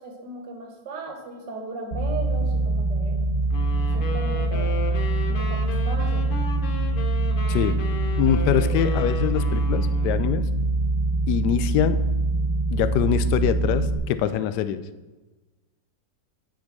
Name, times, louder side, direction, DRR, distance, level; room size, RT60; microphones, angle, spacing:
voice 1, 0.0-3.2 3.9-4.8 5.3-6.3, right 3 dB, 75° right, 3 dB, 1.9 m, -37 dB
sound 1, 1.9-14.0, right 2 dB, 45° right, 1.6 m, -24 dB
sound 2, 3.5-10.3, left 4 dB, 50° left, 0.6 m, -35 dB
voice 2, 8.2-10.5 11.3-12.0 12.7-14.8, left 10 dB, 75° left, 12 dB, 1.1 m, -24 dB
9.3 x 4.7 x 6.0 m, 1.2 s
omnidirectional pair, 2.0 m